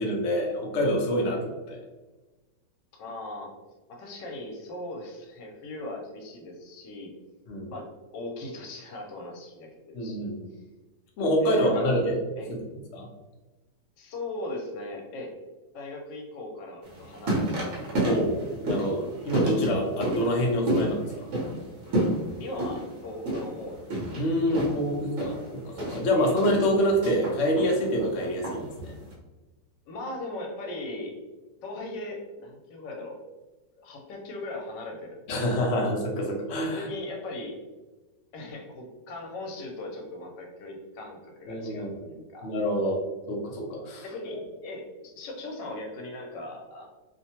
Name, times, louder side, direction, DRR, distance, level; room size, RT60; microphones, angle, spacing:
voice 1, 0.0-1.8 7.5-7.7 9.9-10.5 11.2-12.2 12.9-13.1 18.0-18.4 18.6-21.3 24.2-28.9 35.3-36.9 41.5-42.1 42.4-43.0 43.3-44.1, equal, 65° left, 0 dB, 0.7 m, -26 dB
voice 2, 3.0-3.5 3.9-7.1 7.7-10.3 11.5-11.9 12.4-12.5 14.0-15.3 15.7-17.8 22.4-23.8 24.5-24.6 26.1-26.3 29.9-31.1 31.6-33.2 33.8-35.6 36.7-37.5 38.3-42.5 44.0-46.9, left 2 dB, 80° left, 1 dB, 1.3 m, -39 dB
sound 1, 16.8-29.1, right 1 dB, 55° right, 1.1 m, -31 dB
3.0 x 2.1 x 2.8 m, 1.2 s
omnidirectional pair, 1.9 m